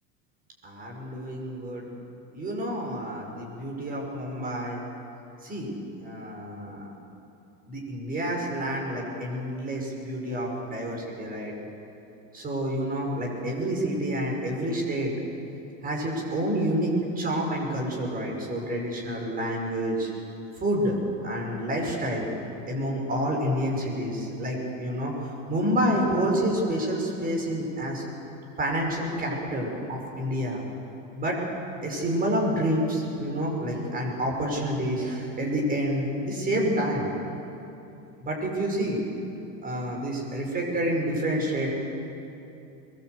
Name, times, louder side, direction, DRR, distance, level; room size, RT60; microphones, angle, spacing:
voice 1, 0.6-1.9 2.3-4.8 5.4-5.7 6.0-6.9 7.6-11.5 12.3-15.1 15.8-20.1 20.6-21.0 21.2-22.3 22.7-28.0 28.6-30.6 31.2-31.4 31.8-37.1 38.2-39.0 39.6-41.7, equal, 25° right, -1 dB, 6.2 m, -28 dB
23.5 x 22.5 x 8.3 m, 2.9 s
cardioid pair, 145°, 37 cm